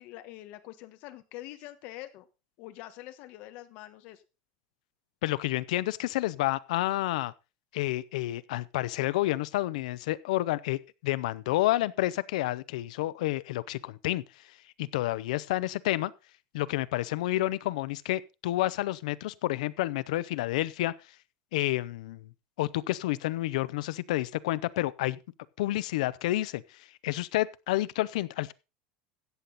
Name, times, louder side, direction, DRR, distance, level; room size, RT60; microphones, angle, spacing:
voice 1, 0.0-2.3 2.6-4.2, left 15 dB, 45° left, 1.3 m, -45 dB
voice 2, 5.2-7.3 7.7-14.2 14.8-16.1 16.5-20.9 21.5-22.3 22.6-25.2 25.6-28.5, left 16 dB, 90° left, 0.6 m, -29 dB
14.0 x 8.5 x 4.0 m
supercardioid pair, 170°, 4 cm